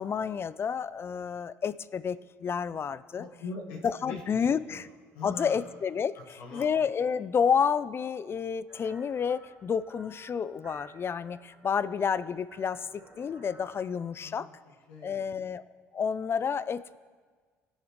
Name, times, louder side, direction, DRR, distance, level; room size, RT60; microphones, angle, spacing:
voice 1, 0.0-3.2 3.8-4.9 5.2-14.5 15.0-15.6 15.9-17.0, left 6 dB, 40° left, 16 dB, 0.4 m, -30 dB
voice 2, 3.2-5.6 6.4-6.7 14.2-14.5 14.9-15.4, left 3 dB, 90° left, -2 dB, 1.6 m, -42 dB
sound 1, 8.7-13.8, right 1 dB, 30° right, 2.9 m, -55 dB
18.5 x 6.5 x 3.1 m, 1.5 s
supercardioid pair, 70°, 7 cm